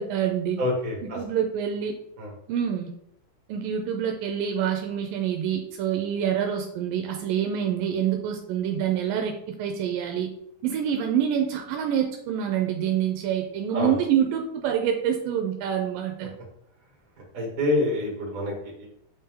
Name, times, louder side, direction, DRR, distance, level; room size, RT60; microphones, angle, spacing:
voice 1, 0.0-0.6 1.0-1.9 2.5-2.9 3.5-10.3 10.6-16.3, right 9 dB, 80° right, 3 dB, 2.3 m, -26 dB
voice 2, 0.6-1.2 2.2-2.3 13.7-14.0 17.3-18.9, left 2 dB, 30° right, -2 dB, 2.0 m, -27 dB
8.1 x 4.3 x 3.8 m, 0.72 s
omnidirectional pair, 4.2 m